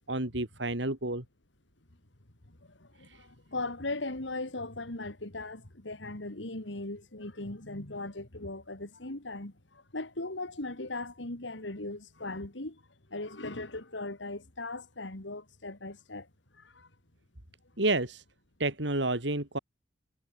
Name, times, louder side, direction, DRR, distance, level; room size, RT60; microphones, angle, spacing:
voice 1, 0.1-1.2 17.8-18.2 18.6-19.6, right 2 dB, 70° right, 3.6 m, -30 dB
voice 2, 2.8-12.8 13.1-16.3 16.6-16.9, left 2 dB, 80° left, 2.8 m, -38 dB
head